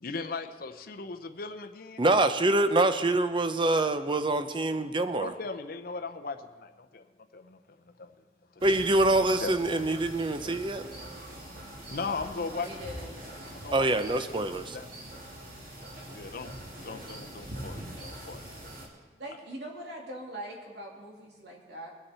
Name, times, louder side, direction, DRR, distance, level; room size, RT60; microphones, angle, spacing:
voice 1, 0.0-2.1 5.2-7.0 7.3-7.6 8.0-8.1 9.4-9.6 11.9-12.7 13.5-13.9 14.2-14.5 14.7-14.9 16.1-16.5 16.8-18.4, left 4 dB, 55° left, 7 dB, 0.7 m, -37 dB
voice 2, 2.0-5.3 8.6-10.8 13.7-14.8, right 2 dB, 30° right, 10 dB, 0.6 m, -25 dB
sound 1, 8.6-18.9, right 1 dB, 50° right, 2.6 m, -43 dB
voice 3, 12.3-13.1 19.2-21.9, right 1 dB, 70° right, -1 dB, 2.7 m, -42 dB
22.0 x 8.1 x 4.3 m, 1.3 s
head